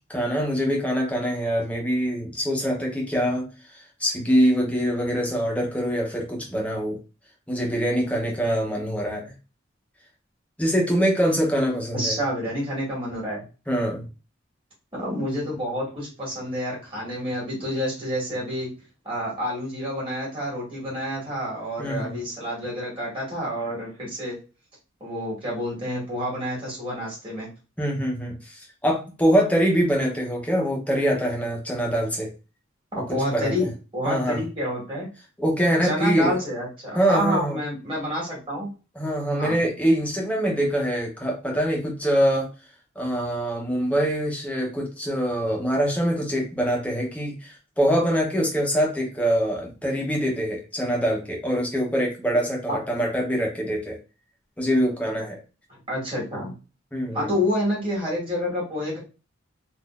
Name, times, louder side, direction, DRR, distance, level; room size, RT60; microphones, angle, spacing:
voice 1, 0.1-3.5 4.0-7.0 7.5-9.3 10.6-12.2 13.7-14.1 21.8-22.2 27.8-32.3 33.0-33.1 33.3-33.7 34.0-34.4 35.4-36.4 36.9-37.6 38.9-42.5 43.0-54.0 54.6-55.4 56.9-57.3, equal, 5° left, -1 dB, 0.8 m, -24 dB
voice 2, 11.9-13.4 14.9-18.7 19.1-24.4 25.0-27.5 33.1-33.7 33.9-35.1 35.8-38.7 39.4-39.6 52.7-52.8 55.9-56.5 57.1-59.0, equal, 25° right, -4 dB, 1.9 m, -28 dB
3.8 x 2.6 x 2.4 m, 0.33 s
head